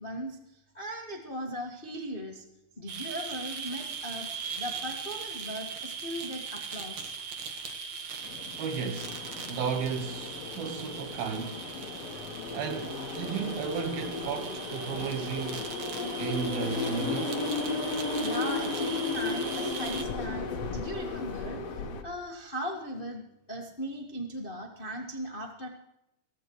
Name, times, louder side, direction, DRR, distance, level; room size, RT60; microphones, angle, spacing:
voice 1, 0.0-2.4 2.8-4.3 4.6-7.1 18.1-25.7, equal, 85° left, 0.4 m, -38 dB
sound 1, 2.9-20.0, right 6 dB, 55° right, 2.1 m, -39 dB
sound 2, 8.2-22.0, left 3 dB, 55° left, 1.9 m, -35 dB
voice 2, 8.6-9.2 9.5-11.6 12.5-15.7 16.2-17.4, right 6 dB, 85° right, 3.2 m, -34 dB
22.5 x 16.0 x 3.1 m
omnidirectional pair, 4.2 m